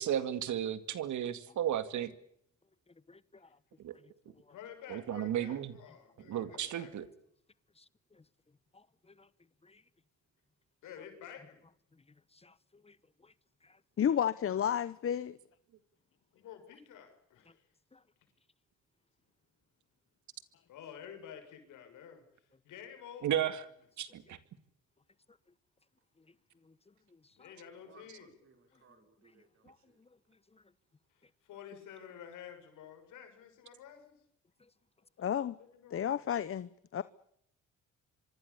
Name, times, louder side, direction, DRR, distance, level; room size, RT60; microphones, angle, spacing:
voice 1, 0.0-2.1 3.8-3.9 4.9-5.7 6.3-7.1 23.2-23.6 24.0-24.4, right 10 dB, 70° right, 2.3 m, -34 dB
voice 2, 3.1-3.5 4.4-4.5 7.8-7.9 8.1-8.2 8.7-9.3 9.6-9.8 12.3-13.0 13.2-13.3 13.6-13.8 17.9-18.0 26.6-26.7 27.4-27.5 29.6-30.1 30.5-30.6, left 3 dB, 20° left, 1.1 m, -62 dB
voice 3, 4.5-7.0 10.8-11.6 16.3-17.6 20.7-23.5 27.3-28.3 28.7-28.8 31.1-34.2 35.6-36.2, left 8 dB, 85° left, 6.7 m, -51 dB
voice 4, 14.0-15.4 35.2-35.6 35.9-37.0, left 9 dB, 45° left, 0.9 m, -31 dB
voice 5, 27.6-29.6, right 4 dB, 45° right, 5.4 m, -63 dB
25.5 x 23.5 x 7.0 m
cardioid pair, 90°, 30 cm